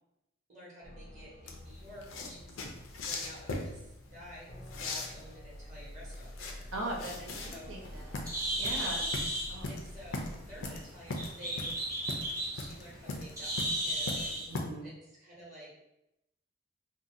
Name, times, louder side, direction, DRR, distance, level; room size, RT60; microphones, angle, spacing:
voice 1, 0.5-2.6 3.0-6.7 7.2-7.7 8.5-9.0 9.7-11.8 12.5-14.4 14.8-15.7, equal, 40° right, -5 dB, 1.0 m, -51 dB
sound 1, 0.8-10.8, left 1 dB, 35° left, 0.4 m, -49 dB
sound 2, 1.5-14.6, left 2 dB, 90° left, 0.5 m, -40 dB
voice 2, 6.7-9.1 9.5-9.7 14.5-14.9, right 1 dB, 85° right, -1 dB, 0.7 m, -40 dB
Bird, 7.2-14.5, right 1 dB, 15° right, 0.7 m, -36 dB
2.7 x 2.2 x 3.7 m, 0.86 s
head